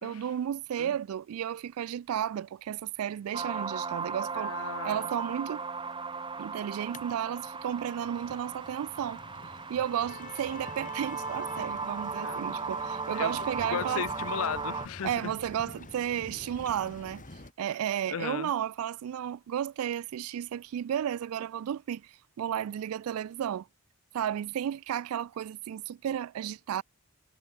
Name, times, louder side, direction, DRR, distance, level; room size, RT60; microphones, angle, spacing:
voice 1, 0.0-4.6 4.8-5.6 6.4-9.2 9.7-14.0 15.0-17.2 17.6-23.7 24.1-26.8, right 9 dB, 90° right, 0.3 m, -33 dB
sound 1, 3.2-11.5, right 5 dB, 40° right, 6.6 m, -64 dB
sound 2, 3.3-14.9, right 4 dB, 25° right, 1.0 m, -36 dB
voice 2, 4.3-5.1 12.2-12.5 13.1-15.3 18.1-18.5, left 8 dB, 75° left, 0.5 m, -36 dB
sound 3, 4.6-17.5, left 2 dB, 40° left, 2.7 m, -48 dB
head